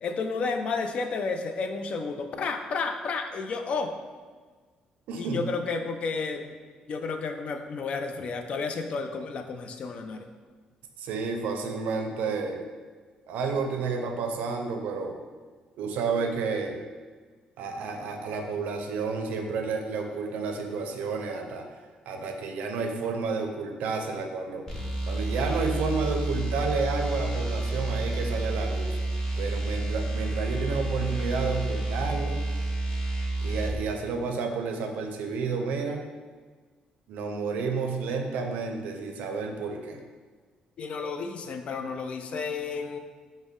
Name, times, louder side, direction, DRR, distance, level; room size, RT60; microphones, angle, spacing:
voice 1, 0.0-3.9 5.2-6.6 6.9-10.3 40.8-43.0, left 4 dB, 50° left, 6 dB, 0.3 m, -31 dB
voice 2, 5.1-5.4 11.0-12.6 13.3-15.2 15.8-16.8 17.6-21.7 22.1-24.7 25.1-29.0 29.4-32.4 33.4-36.0 37.1-40.0, right 4 dB, 80° right, 4 dB, 0.4 m, -31 dB
sound 1, 24.7-33.8, right 2 dB, 20° left, 0.7 m, -29 dB
5.1 x 2.1 x 3.6 m, 1.5 s
cardioid pair, 120°, 3 cm